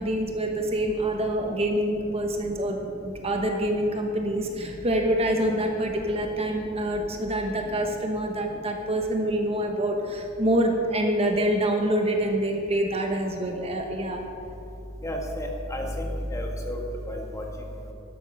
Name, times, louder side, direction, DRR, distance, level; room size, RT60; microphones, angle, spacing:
voice 1, 0.0-14.3, right 1 dB, 30° right, 2 dB, 1.2 m, -26 dB
voice 2, 15.0-16.8 17.1-17.4, equal, 15° left, 1 dB, 1.6 m, -31 dB
13.0 x 11.5 x 5.6 m, 2.8 s
head